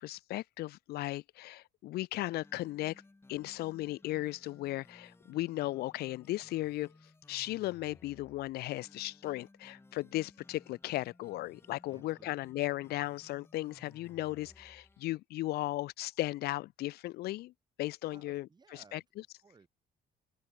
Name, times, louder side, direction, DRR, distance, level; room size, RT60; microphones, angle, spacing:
voice 1, 0.0-3.0 3.3-6.9 7.3-17.5 17.8-19.0, left 17 dB, 70° left, 0.5 m, -36 dB
sound 1, 2.2-15.1, left 2 dB, 15° left, 8.0 m, -60 dB
voice 2, 11.9-12.7 18.1-19.7, right 4 dB, 25° right, 3.2 m, -61 dB
cardioid pair, 110°, 17 cm